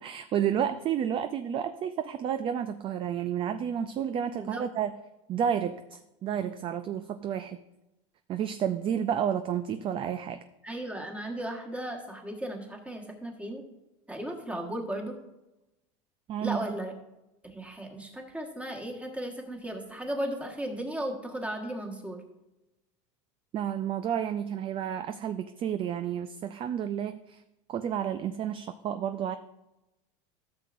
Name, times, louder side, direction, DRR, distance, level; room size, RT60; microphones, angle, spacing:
voice 1, 0.0-4.9 5.3-7.6 8.3-10.4 16.3-16.6 23.5-27.4 27.7-29.4, right 9 dB, 30° right, 10 dB, 0.4 m, -31 dB
voice 2, 10.6-13.6 14.1-15.2 16.4-16.9 17.4-22.2, right 1 dB, 5° right, 2 dB, 1.4 m, -36 dB
13.5 x 6.6 x 2.6 m, 0.96 s
supercardioid pair, 120°, 17 cm